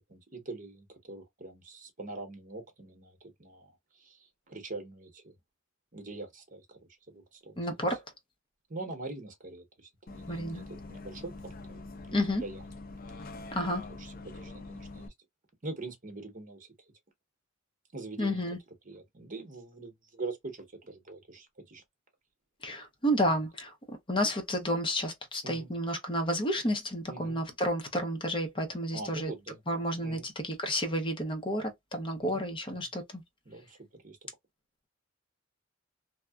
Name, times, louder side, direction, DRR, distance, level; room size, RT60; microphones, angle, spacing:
voice 1, 0.1-5.3 5.9-6.8 7.1-7.8 8.7-12.6 13.2-13.3 13.5-15.1 15.6-16.7 17.9-18.4 18.8-21.8 25.4-25.7 27.1-27.4 28.9-30.2 32.2-32.5 32.7-32.9 33.4-34.2, right 2 dB, 40° right, 1.0 m, -44 dB
voice 2, 7.6-8.0 10.3-10.6 12.1-12.4 13.5-13.8 18.2-18.6 22.6-29.3 29.7-33.2, equal, 25° left, 0.8 m, -31 dB
Bus, 10.1-15.1, left 3 dB, 45° left, 0.5 m, -44 dB
2.8 x 2.3 x 2.3 m
head